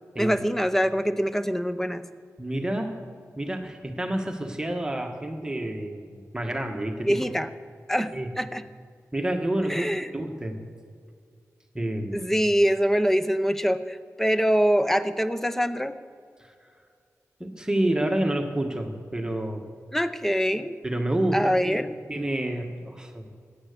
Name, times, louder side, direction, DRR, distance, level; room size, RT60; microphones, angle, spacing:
voice 1, 0.2-2.0 7.1-7.5 7.9-8.6 9.7-10.1 12.1-15.9 19.9-20.7 21.3-22.0, equal, 5° left, 11 dB, 0.7 m, -24 dB
voice 2, 2.4-3.0 3.4-7.2 8.1-8.3 9.1-10.6 11.7-12.2 16.4-16.5 17.4-19.6 20.8-23.3, right 1 dB, 15° right, 3 dB, 1.4 m, -29 dB
16.0 x 10.0 x 6.7 m, 2.2 s
wide cardioid pair, 95°, 6 cm